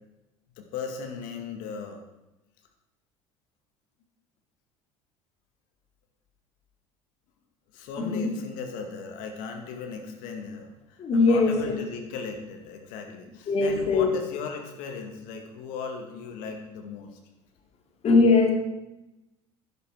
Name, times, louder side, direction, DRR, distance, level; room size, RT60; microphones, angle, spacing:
voice 1, 0.6-2.0 7.7-17.2, left 5 dB, 60° left, 4 dB, 2.4 m, -37 dB
voice 2, 8.0-8.3 11.0-11.8 13.5-14.1 18.0-18.5, left 3 dB, 40° left, 4 dB, 2.6 m, -21 dB
11.0 x 11.0 x 6.3 m, 0.94 s
figure-of-eight pair, 60°, 16 cm